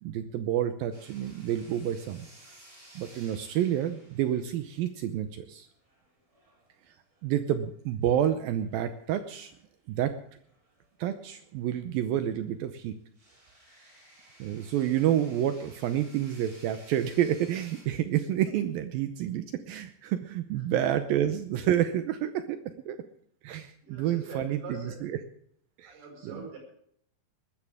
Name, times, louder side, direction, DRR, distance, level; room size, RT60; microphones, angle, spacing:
voice 1, 0.0-2.3 3.0-5.7 7.2-9.5 9.9-10.1 11.0-12.9 14.4-22.6 22.9-23.0 23.4-25.2 25.8-26.4, right 11 dB, 80° right, 9 dB, 2.1 m, -29 dB
sound 1, 0.9-7.5 8.1-8.3 8.5-12.1 12.4-12.5 13.1-17.8, right 1 dB, 20° right, 5.2 m, -57 dB
voice 2, 23.8-25.1 25.8-26.6, right 3 dB, 60° right, 1 dB, 7.1 m, -43 dB
20.5 x 13.5 x 3.5 m, 0.66 s
omnidirectional pair, 5.1 m